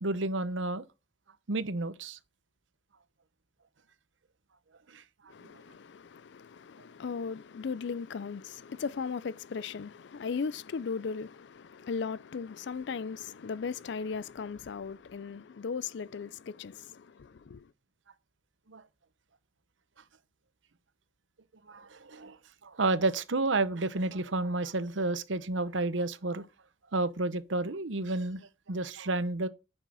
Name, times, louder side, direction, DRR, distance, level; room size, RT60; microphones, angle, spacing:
voice 1, 0.0-0.9 1.5-2.2 4.9-5.6 18.7-18.8 21.7-22.4 22.6-26.5 26.9-29.5, right 2 dB, 75° right, 0.9 m, -31 dB
voice 2, 5.3-17.7, left 5 dB, 65° left, 0.4 m, -37 dB
9.9 x 6.4 x 4.8 m
head